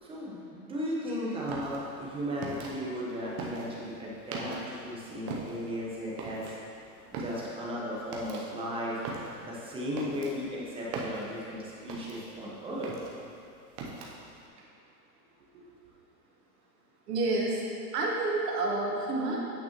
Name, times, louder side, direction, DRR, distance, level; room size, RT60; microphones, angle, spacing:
voice 1, 0.0-6.5 7.1-9.0 9.4-12.9, equal, 10° right, -5 dB, 1.1 m, -36 dB
sound 1, 1.4-4.9 5.2-12.4 12.7-14.4, right 3 dB, 30° right, 0.8 m, -40 dB
voice 2, 17.1-17.6 17.9-19.4, right 2 dB, 70° right, -2 dB, 1.6 m, -29 dB
8.6 x 5.8 x 3.0 m, 2.6 s
hypercardioid pair, 135°, 50 cm